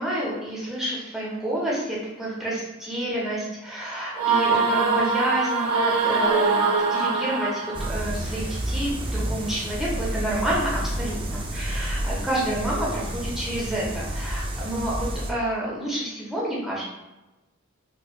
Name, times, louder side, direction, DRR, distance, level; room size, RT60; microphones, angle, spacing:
voice 1, 0.0-16.8, right 1 dB, ahead, -6 dB, 0.7 m, -29 dB
sound 1, 4.2-8.0, right 4 dB, 80° right, 0.5 m, -23 dB
sound 2, 7.7-15.3, right 1 dB, 20° right, 0.3 m, -30 dB
4.3 x 2.3 x 2.3 m, 1.0 s
head